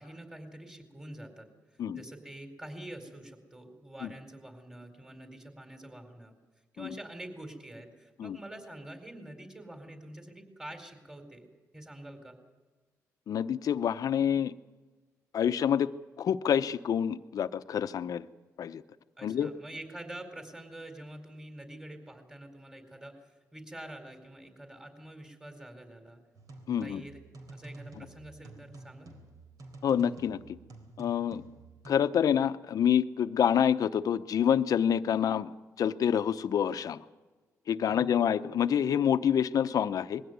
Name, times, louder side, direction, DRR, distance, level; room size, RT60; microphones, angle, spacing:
voice 1, 0.0-1.5 1.9-6.3 6.7-11.5 11.7-12.4 19.2-26.2 26.8-27.2 27.5-29.1 37.9-38.2, right 1 dB, 10° right, 6 dB, 4.4 m, -46 dB
voice 2, 13.3-14.5 15.3-15.9 16.2-18.2 18.6-18.8 19.2-19.5 26.7-27.0 29.8-30.6 31.0-31.4 31.9-35.5 35.8-37.0 37.7-40.2, left 8 dB, 65° left, 12 dB, 0.8 m, -27 dB
sound 1, 26.3-31.9, right 2 dB, 70° right, 3.8 m, -50 dB
21.0 x 16.0 x 9.5 m, 1.3 s
cardioid pair, 70°, 6 cm